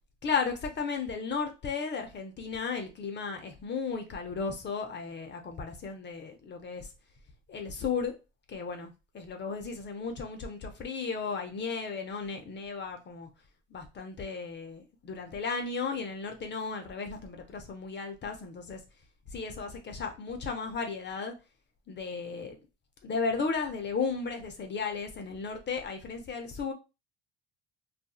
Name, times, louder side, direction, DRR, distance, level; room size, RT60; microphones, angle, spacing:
voice 1, 0.2-6.9 7.5-8.2 8.5-13.3 13.7-18.8 19.3-21.3 21.9-22.6 23.0-26.7, left 5 dB, 35° left, 0.7 m, -35 dB
2.6 x 2.5 x 2.3 m
hypercardioid pair, 70°, 29 cm